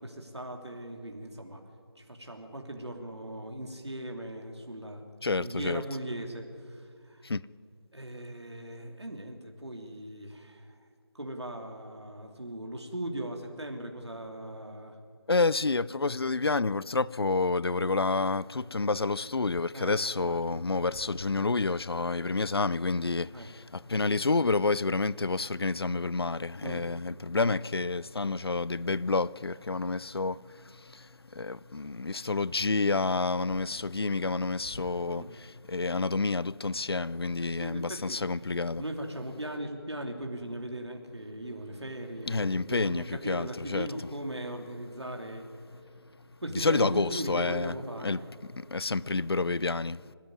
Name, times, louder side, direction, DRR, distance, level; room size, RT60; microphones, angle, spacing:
voice 1, 0.0-1.6 2.0-5.0 5.4-7.3 7.9-10.7 11.1-15.0 19.7-20.6 23.3-23.5 25.2-25.3 26.6-26.9 35.1-35.3 37.5-38.2 38.8-45.5 46.4-48.2, right 1 dB, 85° right, 2.9 m, -38 dB
voice 2, 5.2-5.8 7.2-7.4 15.3-38.8 42.3-43.9 46.5-47.8 48.0-50.0, left 3 dB, 65° left, 0.6 m, -29 dB
25.5 x 13.5 x 9.5 m
figure-of-eight pair, 165°, 14 cm